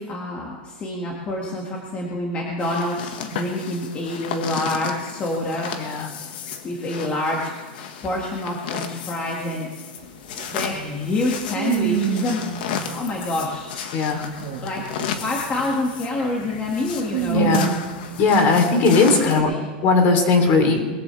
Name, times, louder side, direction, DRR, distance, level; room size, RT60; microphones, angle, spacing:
voice 1, 0.0-5.7 6.6-9.7 10.5-12.4 12.8-13.7 14.6-14.8 15.2-17.5 19.2-19.7, left 2 dB, 25° left, -2 dB, 2.0 m, -27 dB
sound 1, 2.6-19.4, left 7 dB, 70° left, 1.7 m, -34 dB
voice 2, 5.8-6.1 13.9-14.2 17.3-17.7 18.2-19.5 19.8-20.8, left 4 dB, 40° left, 4 dB, 3.2 m, -18 dB
sound 2, 10.0-10.1 10.4-13.6 14.1-18.2, right 12 dB, 60° right, 1.8 m, -28 dB
21.5 x 15.0 x 3.4 m, 1.4 s
supercardioid pair, 150°, 5 cm